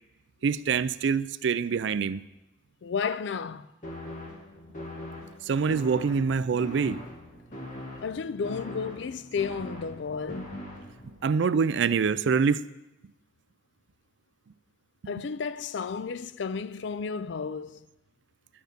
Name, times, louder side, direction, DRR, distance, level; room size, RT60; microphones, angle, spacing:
voice 1, 0.4-2.2 5.5-7.0 11.2-12.7, right 5 dB, 65° right, 0.4 m, -25 dB
voice 2, 2.8-3.7 8.0-10.6 15.1-17.8, left 5 dB, 65° left, 0.4 m, -32 dB
sound 1, 3.8-11.2, left 1 dB, 40° left, 1.9 m, -41 dB
11.5 x 6.4 x 6.7 m
head